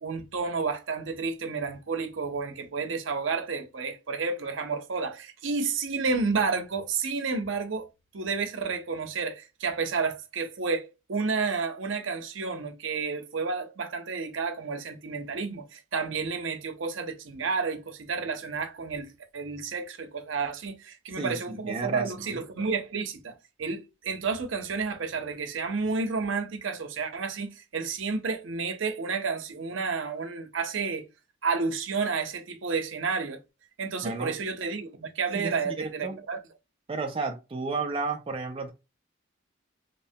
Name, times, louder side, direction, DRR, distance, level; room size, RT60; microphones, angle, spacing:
voice 1, 0.0-7.9 8.1-31.1 31.4-33.4 33.8-36.4, right 4 dB, 75° right, 0.6 m, -31 dB
voice 2, 21.2-22.4 34.0-34.4 35.3-36.2 36.9-38.7, right 3 dB, 25° right, 0.3 m, -33 dB
2.9 x 2.1 x 2.6 m
head